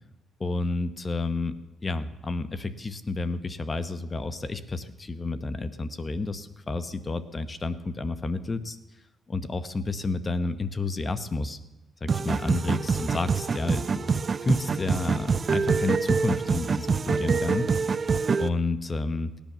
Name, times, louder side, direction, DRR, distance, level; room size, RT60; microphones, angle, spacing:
voice 1, 0.4-1.6 1.8-8.8 9.3-11.6 12.0-14.0 14.4-18.0 18.4-19.3, left 3 dB, 30° left, 12 dB, 1.0 m, -30 dB
sound 1, 12.1-18.5, right 5 dB, 40° right, 0.5 m, -25 dB
18.0 x 10.5 x 6.8 m, 0.98 s
cardioid pair, 90°, 0 cm